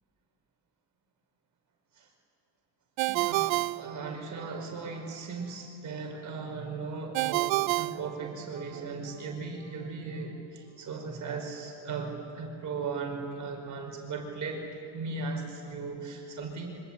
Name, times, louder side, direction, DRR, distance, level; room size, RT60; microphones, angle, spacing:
Ringtone, 3.0-4.6 7.1-8.8, right 20 dB, 85° right, 0.7 m, -30 dB
voice 1, 3.1-14.7 14.9-16.8, right 4 dB, 40° right, 2 dB, 5.3 m, -37 dB
27.5 x 25.0 x 8.5 m, 2.6 s
cardioid pair, 130°, 45 cm